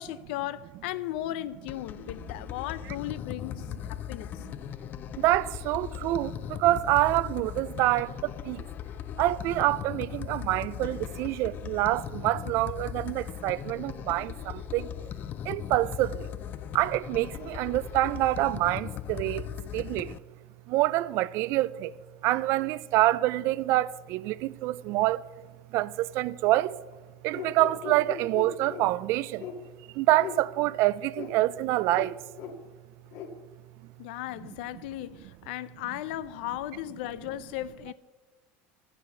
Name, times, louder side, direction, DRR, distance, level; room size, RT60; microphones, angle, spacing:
voice 1, 0.0-4.4 34.0-37.9, left 14 dB, 75° left, 0.6 m, -36 dB
sound 1, 1.7-20.2, left 11 dB, 35° left, 0.3 m, -38 dB
voice 2, 5.2-8.7 9.2-14.9 15.4-16.3 16.7-20.2 20.7-21.9 22.2-25.2 25.7-26.8 27.2-29.5 29.9-32.2, right 16 dB, 50° right, 0.4 m, -26 dB
sound 2, 27.3-28.8 29.4-29.6 30.2-30.4 31.1-31.3 31.9-32.1 32.4-32.6 33.1-33.3, left 7 dB, 60° left, 2.1 m, -38 dB
11.5 x 8.3 x 8.0 m
cardioid pair, 150°, 6 cm